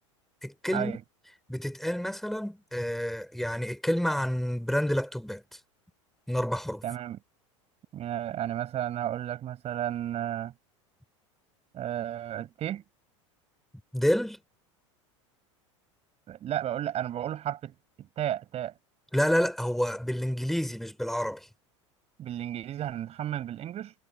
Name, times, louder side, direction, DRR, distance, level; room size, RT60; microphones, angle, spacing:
voice 1, 0.4-1.0 1.5-5.6 6.3-6.8 13.9-14.4 19.1-21.5, equal, ahead, 3.3 m, -29 dB
voice 2, 6.8-7.2 7.9-10.5 11.7-12.8 16.3-18.7 22.2-23.9, right 11 dB, 40° right, 6.2 m, -33 dB
hypercardioid pair, 90°, 16 cm